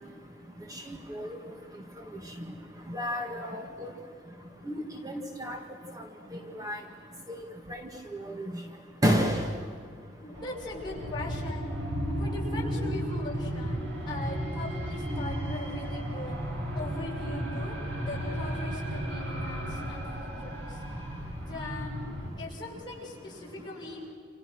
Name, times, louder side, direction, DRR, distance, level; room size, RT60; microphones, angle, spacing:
voice 1, 0.7-1.3 2.9-3.9 4.7-4.8 5.0-5.6 6.5-6.8 7.3-7.4 7.7-7.8 8.4-8.5 9.0-9.5, equal, 20° right, 3 dB, 1.8 m, -29 dB
voice 2, 10.2-11.7 12.2-16.4 16.7-20.8 21.4-22.0 22.4-24.0, left 2 dB, 25° left, -4 dB, 7.5 m, -40 dB
sound 1, 10.3-22.3, equal, 85° right, 7.7 m, -34 dB
29.5 x 28.0 x 6.3 m, 2.4 s
head